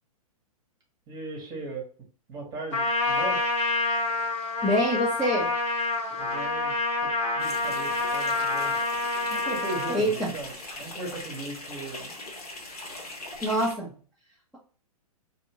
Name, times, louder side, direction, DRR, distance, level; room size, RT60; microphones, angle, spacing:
voice 1, 1.1-1.9 2.3-3.4 6.2-6.7 7.0-7.1 7.3-8.7 9.3-10.5 10.8-12.1, right 3 dB, 20° right, 0 dB, 1.1 m, -37 dB
Trumpet, 2.7-10.0, left 2 dB, 55° left, 1.2 m, -27 dB
voice 2, 4.6-5.5 9.9-10.3 13.4-13.9, equal, 5° left, -6 dB, 0.7 m, -25 dB
sound 1, 7.4-13.7, left 2 dB, 80° left, 1.3 m, -40 dB
2.8 x 2.5 x 2.8 m, 0.40 s
hypercardioid pair, 120°, 19 cm